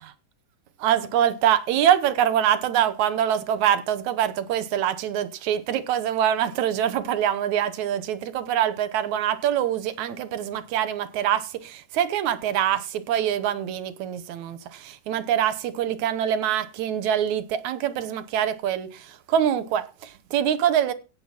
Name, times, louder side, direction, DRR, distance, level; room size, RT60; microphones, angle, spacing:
voice 1, 0.8-20.9, right 10 dB, 85° right, 2.4 m, -24 dB
17.0 x 6.7 x 5.9 m
omnidirectional pair, 3.3 m